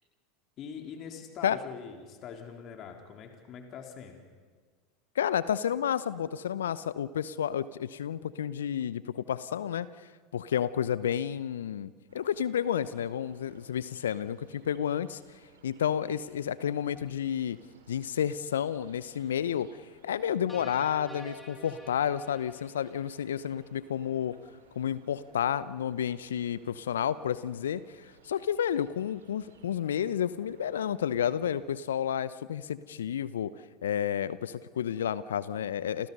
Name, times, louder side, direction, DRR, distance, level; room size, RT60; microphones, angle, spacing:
voice 1, 0.6-4.3, left 7 dB, 45° left, 3 dB, 3.6 m, -43 dB
voice 2, 5.1-9.9 10.3-15.2 15.6-17.6 17.9-19.7 20.0-24.4 24.8-33.5 33.8-36.1, left 9 dB, 75° left, 17 dB, 0.8 m, -31 dB
sound 1, 12.1-31.7, right 5 dB, 80° right, 4.0 m, -60 dB
sound 2, 20.5-23.8, equal, 10° left, 6.1 m, -49 dB
28.5 x 28.5 x 5.5 m, 1.5 s
hypercardioid pair, 80°, 0 cm